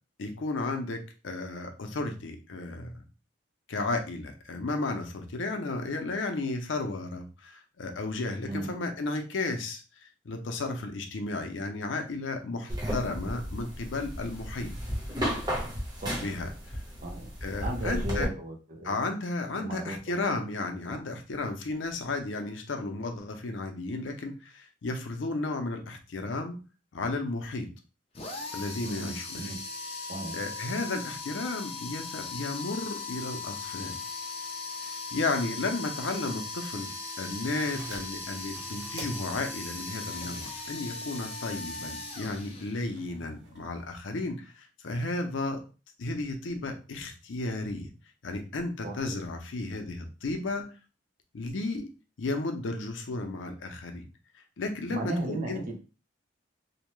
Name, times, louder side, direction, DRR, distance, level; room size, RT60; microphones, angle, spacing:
voice 1, 0.2-3.0 3.7-9.8 10.2-14.7 16.2-16.8 17.4-18.3 18.8-26.6 26.9-27.7 28.5-29.5 30.3-34.0 34.8-36.9 37.2-45.6 46.0-47.9 48.2-50.6 51.3-51.9 52.2-54.1 54.6-55.6, left 2 dB, 85° left, 5 dB, 0.6 m, -33 dB
sound 1, 12.7-18.2, equal, 20° right, 0.9 m, -34 dB
voice 2, 17.6-19.0 19.6-20.2 20.9-21.0 28.8-29.6 30.1-30.4 48.8-49.2 54.9-55.8, right 1 dB, 45° right, 3 dB, 0.6 m, -35 dB
sound 2, 28.1-43.0, left 3 dB, 30° left, 0.6 m, -39 dB
sound 3, 37.5-44.3, right 2 dB, 85° right, 0.9 m, -49 dB
2.7 x 2.1 x 3.1 m, 0.33 s
head